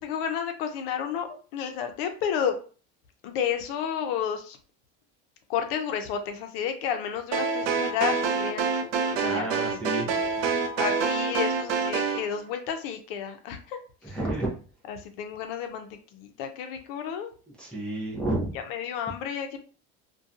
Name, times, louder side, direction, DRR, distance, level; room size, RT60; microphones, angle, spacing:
voice 1, 0.0-2.6 3.2-4.6 5.5-9.5 9.8-9.9 10.8-13.8 14.1-14.2 14.9-17.3 18.7-19.6, left 8 dB, 70° left, 6 dB, 0.6 m, -31 dB
sound 1, 7.3-12.2, right 5 dB, 65° right, 0.5 m, -27 dB
voice 2, 9.2-10.4 14.0-14.5 17.6-18.6, right 2 dB, 5° left, -6 dB, 0.6 m, -31 dB
2.6 x 2.2 x 2.5 m, 0.39 s
cardioid pair, 155°, 30 cm